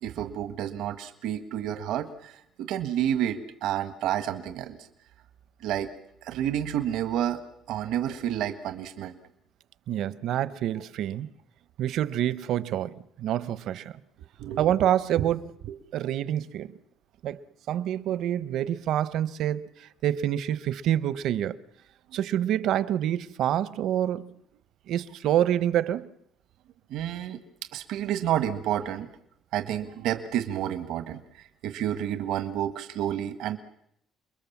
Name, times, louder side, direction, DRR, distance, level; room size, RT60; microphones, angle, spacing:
voice 1, 0.0-4.8 5.6-5.9 6.2-9.2 14.4-14.7 15.2-15.3 26.9-27.4 27.7-29.1 29.5-33.6, right 11 dB, 90° right, 1.6 m, -30 dB
voice 2, 9.9-11.3 11.8-14.0 14.6-15.5 15.9-16.7 17.2-21.6 22.1-24.4 24.9-26.1, right 11 dB, 70° right, 1.0 m, -27 dB
29.0 x 21.5 x 7.3 m
cardioid pair, 140°, 0 cm